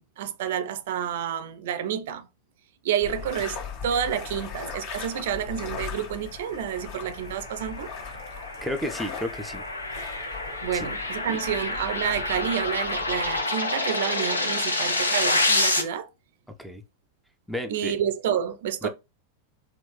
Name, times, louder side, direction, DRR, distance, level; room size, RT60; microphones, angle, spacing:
voice 1, 0.0-2.3 2.8-7.9 10.3-16.1 17.7-18.9, right 9 dB, 55° right, 0.5 m, -29 dB
sound 1, 3.0-13.4, left 6 dB, 50° left, 1.8 m, -39 dB
sound 2, 6.9-15.8, left 2 dB, 75° left, 0.8 m, -28 dB
voice 2, 8.6-9.6 10.7-10.9 11.3-11.4 16.6-16.8 17.5-17.9 18.8-18.9, equal, ahead, 0.5 m, -32 dB
4.3 x 2.4 x 3.1 m
figure-of-eight pair, 90°, 0 cm